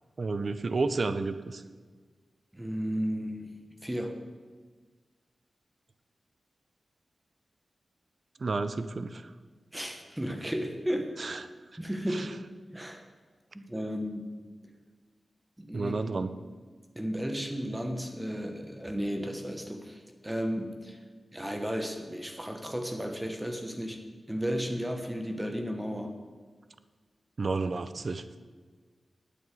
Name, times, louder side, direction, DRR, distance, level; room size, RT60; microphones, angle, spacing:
voice 1, 0.2-1.6 8.4-9.3 11.2-11.4 12.1-12.3 15.7-16.3 27.4-28.2, right 3 dB, 55° right, 12 dB, 0.7 m, -31 dB
voice 2, 2.5-3.5 3.8-4.2 9.7-11.1 11.8-12.3 12.7-13.0 13.5-14.4 15.6-16.2 16.9-21.0 21.3-24.0 24.3-26.2, equal, 10° right, 4 dB, 1.2 m, -34 dB
9.4 x 8.6 x 7.7 m, 1.5 s
wide cardioid pair, 75°, 0 cm